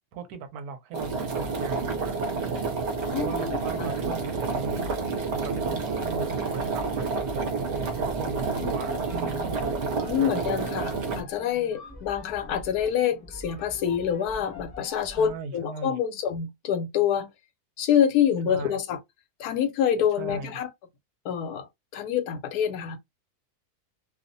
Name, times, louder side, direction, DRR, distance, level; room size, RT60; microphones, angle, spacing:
voice 1, 0.1-2.6 3.1-9.6 10.1-10.3 15.1-16.0 18.5-18.8 20.2-20.6, right 5 dB, 75° right, 1.1 m, -38 dB
sound 1, 0.9-11.2, right 4 dB, 55° right, 0.9 m, -29 dB
voice 2, 3.0-3.5 3.8-3.9 8.6-8.7 10.0-17.3 17.8-19.0 19.4-20.7 21.2-21.7 21.9-23.0, left 9 dB, 80° left, 1.1 m, -26 dB
sound 2, 7.6-15.4, left 1 dB, 15° left, 0.6 m, -45 dB
2.7 x 2.0 x 2.6 m
omnidirectional pair, 1.7 m